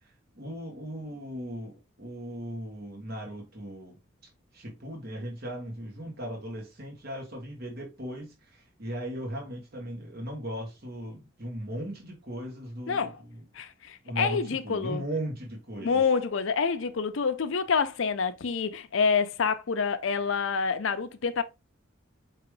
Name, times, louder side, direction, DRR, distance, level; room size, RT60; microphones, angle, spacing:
voice 1, 0.0-4.0 4.5-13.4 14.0-16.0, right 1 dB, 50° right, 1.3 m, -38 dB
voice 2, 13.6-15.0 15.8-21.4, left 5 dB, 70° left, 0.5 m, -27 dB
4.7 x 3.0 x 3.1 m
head